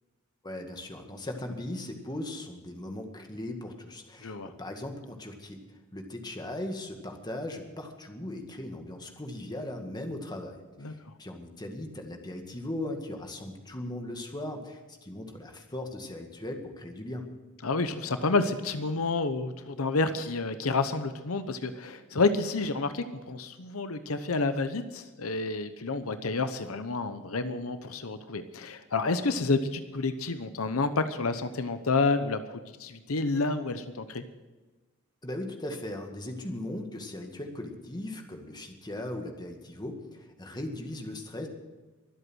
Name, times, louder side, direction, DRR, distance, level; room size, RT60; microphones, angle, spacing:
voice 1, 0.4-5.6 5.9-17.2 35.2-41.5, left 1 dB, 20° left, 3 dB, 1.9 m, -38 dB
voice 2, 4.2-4.5 10.8-11.1 17.6-34.2, left 3 dB, 80° left, 10 dB, 0.9 m, -29 dB
23.5 x 8.1 x 6.3 m, 1.2 s
head